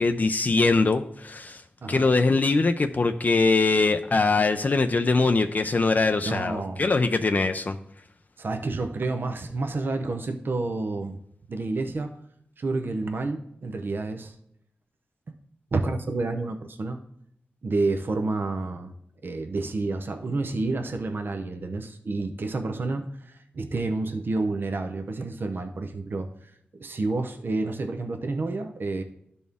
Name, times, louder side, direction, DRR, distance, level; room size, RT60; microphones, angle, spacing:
voice 1, 0.0-1.6 1.9-7.8, left 3 dB, 45° left, 7 dB, 0.4 m, -22 dB
voice 2, 1.8-2.1 6.2-6.8 8.4-11.2 11.5-12.1 12.6-14.3 15.7-17.0 17.6-18.9 19.2-26.3 26.8-29.0, right 3 dB, 60° right, 6 dB, 0.7 m, -29 dB
12.5 x 4.2 x 3.5 m, 0.72 s
wide cardioid pair, 75°, 4 cm